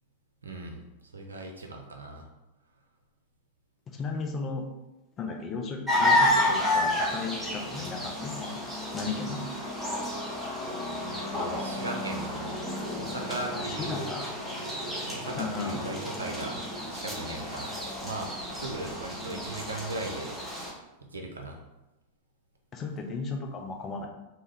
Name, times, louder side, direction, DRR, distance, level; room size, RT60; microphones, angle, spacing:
voice 1, 0.4-0.8 1.1-2.3 11.1-12.6 12.9-14.1 15.1-16.6 16.9-17.7 18.0-20.4 21.1-21.6, right 2 dB, 75° right, 2 dB, 0.5 m, -38 dB
voice 2, 3.9-4.6 5.2-8.6 8.9-9.5 13.5-14.3 15.4-15.8 22.7-24.1, left 4 dB, 30° left, 3 dB, 0.5 m, -35 dB
sound 1, 5.9-20.7, left 1 dB, 5° right, 0.7 m, -31 dB
3.0 x 2.2 x 3.3 m, 0.99 s
figure-of-eight pair, 90°, 0 cm